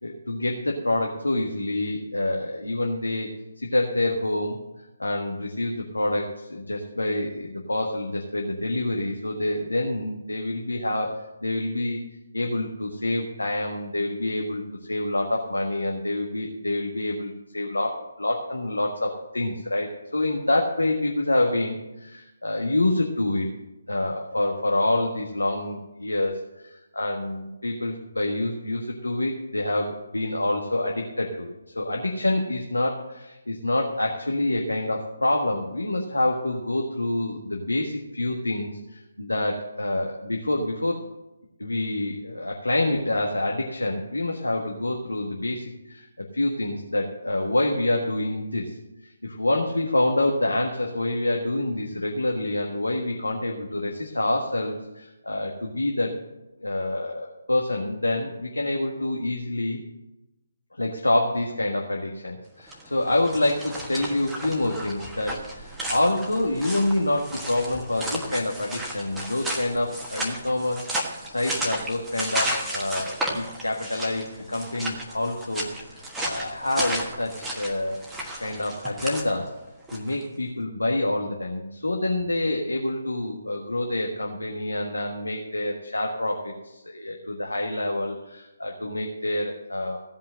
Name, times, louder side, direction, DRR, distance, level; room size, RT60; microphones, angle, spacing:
voice 1, 0.0-3.3 3.6-4.6 5.0-12.0 12.3-14.6 14.9-23.5 23.9-41.0 41.6-46.1 46.3-48.7 49.2-56.1 56.6-59.8 60.7-78.0 78.4-79.5 79.9-90.0, left 1 dB, 75° left, 0 dB, 1.5 m, -27 dB
sound 1, 62.6-80.2, right 1 dB, 5° right, 1.4 m, -33 dB
16.0 x 5.6 x 7.7 m, 0.97 s
figure-of-eight pair, 145°, 0 cm